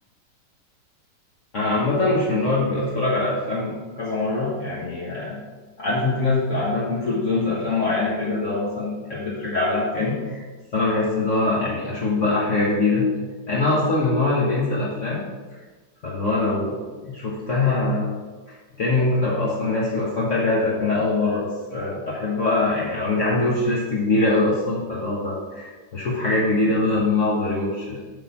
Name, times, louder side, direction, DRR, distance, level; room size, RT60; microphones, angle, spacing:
voice 1, 1.5-5.4 5.8-10.4 10.7-13.1 13.5-15.2 16.0-18.1 18.4-28.0, left 2 dB, 50° left, -5 dB, 1.5 m, -23 dB
8.9 x 4.0 x 5.9 m, 1.3 s
omnidirectional pair, 1.8 m